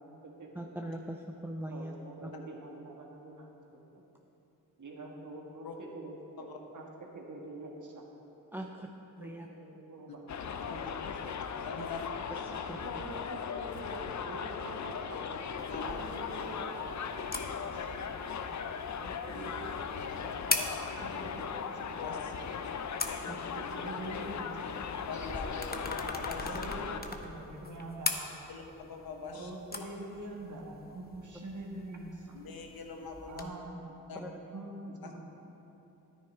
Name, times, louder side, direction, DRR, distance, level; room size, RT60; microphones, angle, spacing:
voice 1, 0.0-0.8 1.7-3.8 4.8-8.1 9.2-10.2 10.6-11.0 12.7-15.2 15.8-18.0 19.0-20.1 20.4-20.6 21.0-21.7 22.0-22.1 23.2-24.8 26.4-28.5 29.3-32.4 33.3-35.2, right 2 dB, 50° right, 0 dB, 1.9 m, -45 dB
voice 2, 0.5-1.9 2.2-2.3 8.5-8.9 9.2-9.5 11.8-11.9 12.3-12.8 18.5-18.6 23.3-23.4 34.1-34.4, right 1 dB, 5° right, 2 dB, 0.6 m, -41 dB
Subway metro underground, 10.3-27.0, left 6 dB, 50° left, 0.7 m, -38 dB
voice 3, 11.6-12.0 15.7-16.0 19.3-19.4 20.1-20.2 22.0-22.8 23.6-23.7 25.1-26.5 28.5-29.5 32.3-33.5 34.1-34.3 35.0-35.1, left 5 dB, 70° left, 3 dB, 1.3 m, -44 dB
sound 1, 15.6-33.4, left 3 dB, 25° left, 1.0 m, -42 dB
9.7 x 9.4 x 4.5 m, 3.0 s
supercardioid pair, 45°, 38 cm